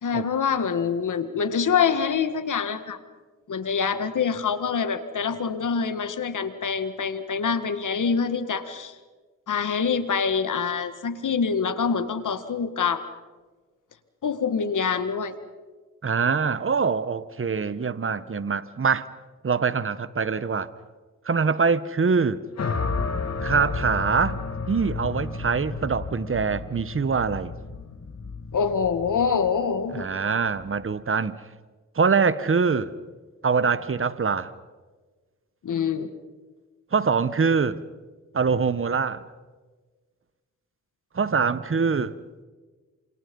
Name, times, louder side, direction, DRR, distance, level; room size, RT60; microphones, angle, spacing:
voice 1, 0.0-3.0 3.5-8.9 9.5-13.0 14.2-15.3 28.5-30.1 35.6-36.1, left 6 dB, 75° left, 1.9 m, -25 dB
voice 2, 16.0-19.1 19.4-20.7 21.2-22.4 23.4-24.4 24.7-27.5 29.9-31.4 31.9-32.9 33.4-34.5 36.9-37.8 38.3-39.2 41.1-42.1, right 5 dB, 40° right, 1.2 m, -24 dB
sound 1, 22.6-30.8, left 4 dB, 55° left, 2.3 m, -32 dB
27.5 x 27.0 x 5.5 m
cardioid pair, 55°, 32 cm